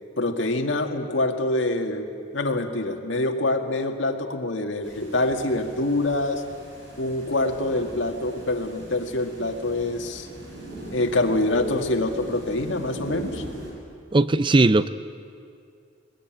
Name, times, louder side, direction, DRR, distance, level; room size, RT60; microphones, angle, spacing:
voice 1, 0.2-6.4 7.0-10.3 10.9-13.4, left 2 dB, 75° left, 3 dB, 2.0 m, -25 dB
sound 1, 4.8-13.7, right 1 dB, 75° right, 7.1 m, -40 dB
voice 2, 14.1-14.9, right 2 dB, 25° right, 14 dB, 0.5 m, -18 dB
21.5 x 21.0 x 9.1 m, 2.3 s
head